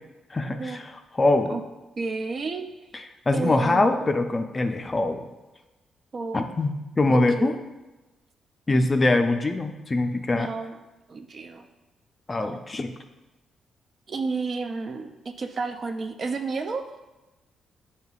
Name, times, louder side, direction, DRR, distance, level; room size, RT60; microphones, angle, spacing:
voice 1, 0.3-1.6 3.3-5.3 6.3-7.5 8.7-10.5 12.3-12.9, left 2 dB, 30° left, 6 dB, 0.4 m, -23 dB
voice 2, 2.0-2.7 3.3-3.9 6.1-6.5 7.1-7.6 10.3-10.8 11.1-11.7 12.3-12.6 14.1-16.9, right 4 dB, 50° right, 6 dB, 0.4 m, -31 dB
7.9 x 2.8 x 2.4 m, 1.1 s
cardioid pair, 75°, 0 cm